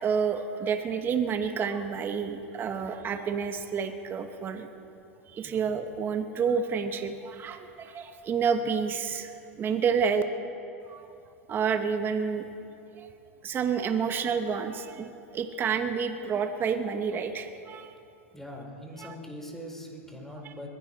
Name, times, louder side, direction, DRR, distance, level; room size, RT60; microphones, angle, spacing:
voice 1, 0.0-4.7 5.3-9.3 9.6-10.2 10.9-11.0 11.5-12.5 13.0-13.1 13.4-17.9 19.0-19.1 20.4-20.5, right 6 dB, 25° right, 7 dB, 1.1 m, -29 dB
voice 2, 5.4-5.7 18.3-20.7, equal, 5° left, 1 dB, 3.1 m, -42 dB
22.0 x 15.5 x 4.1 m, 2.6 s
hypercardioid pair, 115°, 8 cm